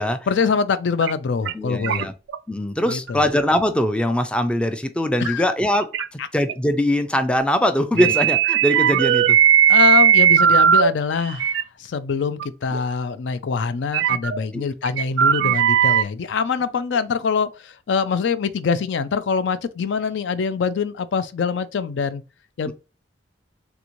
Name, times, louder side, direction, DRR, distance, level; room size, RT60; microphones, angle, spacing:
voice 1, 0.3-2.1 2.9-3.2 5.2-5.4 8.0-8.1 9.7-22.2 22.6-22.7, left 5 dB, 75° left, 0.4 m, -24 dB
sound 1, 1.0-1.1 1.4-1.5 1.8-2.4 2.9-3.1 3.6-3.7 5.2-5.3 5.7-6.1 6.5-6.6 8.0-10.9 11.3-11.6 12.4-12.5 12.7-12.8 13.9-14.4 14.9-16.0, right 9 dB, 80° right, 0.3 m, -17 dB
voice 2, 1.5-2.1 2.5-9.4 14.5-14.7 22.7-22.8, left 1 dB, 5° left, 0.3 m, -22 dB
3.4 x 3.0 x 2.5 m
head